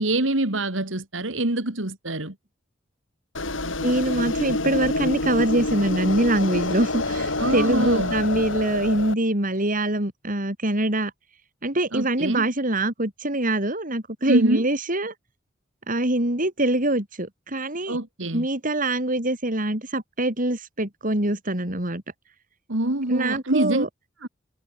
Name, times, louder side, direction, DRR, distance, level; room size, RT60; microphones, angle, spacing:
voice 1, 0.0-2.3 7.4-8.1 11.9-12.5 14.2-14.7 17.9-18.5 22.7-23.9 24.2-24.3, right 1 dB, 85° right, 2.9 m, -25 dB
sound 1, 3.3-9.1, left 2 dB, 85° left, 6.7 m, -27 dB
voice 2, 3.8-11.1 11.6-15.1 15.9-18.0 18.3-22.0 23.1-23.9, right 1 dB, 45° right, 5.3 m, -24 dB
head